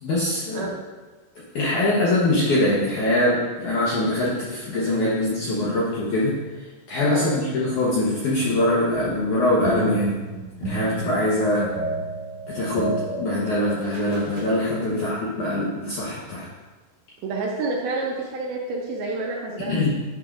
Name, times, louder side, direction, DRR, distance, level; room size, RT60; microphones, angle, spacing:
voice 1, 0.0-0.7 1.6-6.4 6.9-10.2 10.6-11.7 12.5-16.5 19.7-19.9, left 1 dB, 70° left, -7 dB, 1.9 m, -23 dB
sound 1, 8.9-14.5, right 2 dB, 60° right, 2.0 m, -32 dB
voice 2, 17.2-19.9, right 3 dB, 75° right, -1 dB, 2.4 m, -29 dB
11.0 x 5.7 x 2.5 m, 1.2 s
omnidirectional pair, 4.9 m